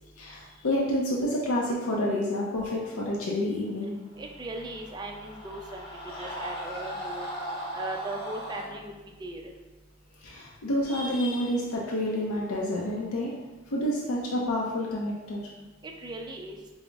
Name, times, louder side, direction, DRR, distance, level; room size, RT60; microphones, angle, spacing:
voice 1, 0.2-4.0 10.2-13.3 13.7-15.4, left 1 dB, 85° left, -3 dB, 0.5 m, -29 dB
Screaming, 4.2-8.7, equal, 25° left, 1.0 m, -38 dB
voice 2, 4.2-5.9 6.1-7.4 7.7-9.4 16.0-16.6, right 2 dB, 20° right, 2 dB, 0.3 m, -38 dB
4.9 x 2.0 x 3.4 m, 1.2 s
head